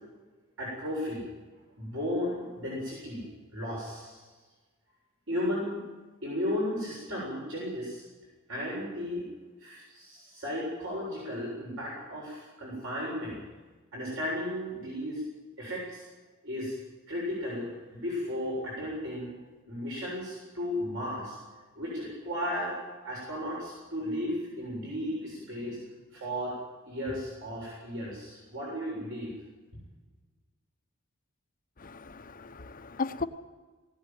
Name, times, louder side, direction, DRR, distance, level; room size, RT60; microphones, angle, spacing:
voice 1, 0.6-1.3 1.8-4.2 5.3-5.8 6.2-8.0 8.5-9.3 9.6-13.4 13.9-15.2 15.6-16.1 16.4-16.7 17.1-19.4 19.7-21.4 21.8-22.8 23.0-26.6 26.8-29.3, left 1 dB, 70° right, -4 dB, 7.4 m, -34 dB
voice 2, 31.8-33.2, left 4 dB, 40° left, 7 dB, 1.0 m, -36 dB
19.5 x 17.5 x 9.2 m, 1.3 s
head